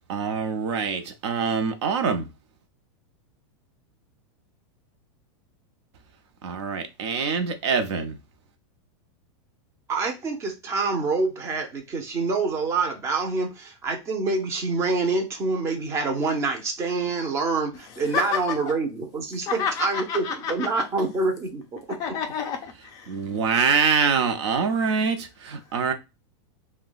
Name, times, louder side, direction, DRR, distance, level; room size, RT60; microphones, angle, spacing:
voice 1, 0.1-2.3 6.4-8.2 23.1-25.9, right 5 dB, 65° right, 0.7 m, -24 dB
voice 2, 9.9-21.8, right 3 dB, 15° right, 0.6 m, -26 dB
voice 3, 17.9-18.6 19.5-21.1 21.9-23.2, left 7 dB, 25° left, 0.4 m, -30 dB
2.8 x 2.2 x 3.8 m
supercardioid pair, 170°, 15 cm